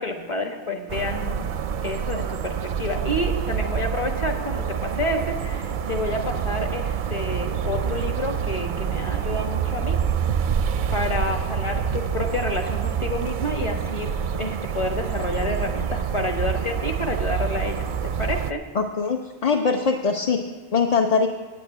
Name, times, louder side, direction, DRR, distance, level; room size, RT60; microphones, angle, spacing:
voice 1, 0.0-1.5 1.8-10.0 10.9-18.6, left 2 dB, 30° left, 4 dB, 1.2 m, -29 dB
sound 1, 0.9-18.5, right 7 dB, 60° right, 0.6 m, -27 dB
voice 2, 18.7-20.4 20.7-21.3, left 5 dB, 45° left, 3 dB, 0.6 m, -22 dB
8.8 x 8.7 x 9.0 m, 1.3 s
omnidirectional pair, 1.1 m